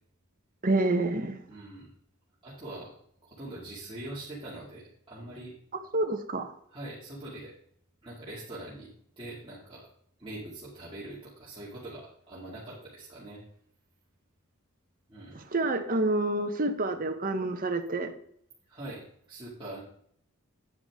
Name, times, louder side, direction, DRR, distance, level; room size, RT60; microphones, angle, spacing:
voice 1, 0.6-1.4 5.9-6.5 15.5-18.1, right 2 dB, 40° right, 6 dB, 1.1 m, -28 dB
voice 2, 1.5-1.9 2.4-5.5 6.7-7.5 8.0-8.9 9.2-9.9 10.2-13.4 15.1-15.4 18.7-19.8, right 1 dB, 20° right, -8 dB, 2.5 m, -43 dB
9.7 x 9.2 x 3.7 m, 0.67 s
head